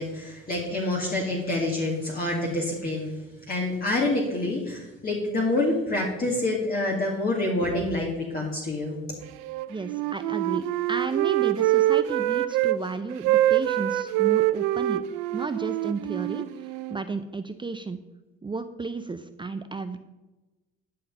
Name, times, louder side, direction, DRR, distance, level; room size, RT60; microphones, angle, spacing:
voice 1, 0.0-3.2 3.5-9.0, left 2 dB, 30° left, -2 dB, 2.2 m, -27 dB
Wind instrument woodwind instrument, 9.4-12.8 13.1-17.0, right 15 dB, 75° right, 0.6 m, -25 dB
voice 2, 9.7-15.0 15.3-16.5 16.9-18.0 18.4-20.0, right 4 dB, 15° right, 9 dB, 0.5 m, -33 dB
10.0 x 5.6 x 5.4 m, 1.1 s
hypercardioid pair, 65°, 29 cm